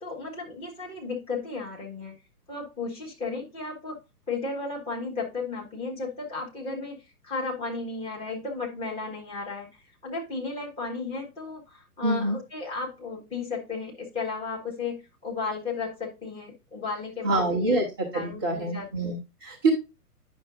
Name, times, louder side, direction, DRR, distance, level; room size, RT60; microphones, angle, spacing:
voice 1, 0.0-2.1 2.5-4.0 4.3-7.0 7.2-17.8 18.1-19.1, left 4 dB, 10° left, -2 dB, 1.3 m, -34 dB
voice 2, 12.0-12.4 17.2-19.7, right 2 dB, 15° right, -2 dB, 0.5 m, -26 dB
9.3 x 5.9 x 2.5 m, 0.28 s
figure-of-eight pair, 120°, 48 cm